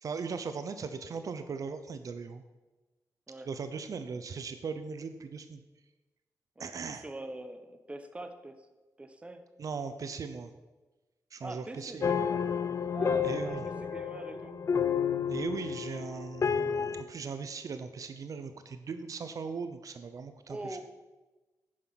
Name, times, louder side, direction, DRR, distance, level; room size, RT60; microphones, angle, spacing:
voice 1, 0.0-2.4 3.5-5.6 6.6-7.0 9.6-10.5 11.3-12.0 13.2-13.6 15.3-20.8, right 5 dB, 60° right, 9 dB, 0.8 m, -38 dB
voice 2, 6.6-8.5 9.0-9.4 11.4-12.5 12.9-14.5 20.5-20.8, right 1 dB, 20° right, 8 dB, 1.1 m, -43 dB
sound 1, 12.0-17.0, left 6 dB, 50° left, 0.7 m, -31 dB
10.5 x 9.4 x 5.9 m, 1.2 s
cardioid pair, 100°, 7 cm